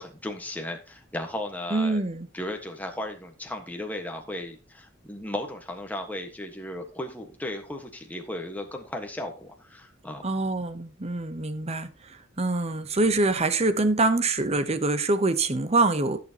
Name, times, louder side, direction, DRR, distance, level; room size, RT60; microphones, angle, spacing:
voice 1, 0.0-2.0 2.3-10.2, left 1 dB, 10° left, 1.4 m, -35 dB
voice 2, 1.7-2.3 10.2-16.2, right 2 dB, 30° right, 0.9 m, -25 dB
15.0 x 6.8 x 2.9 m
head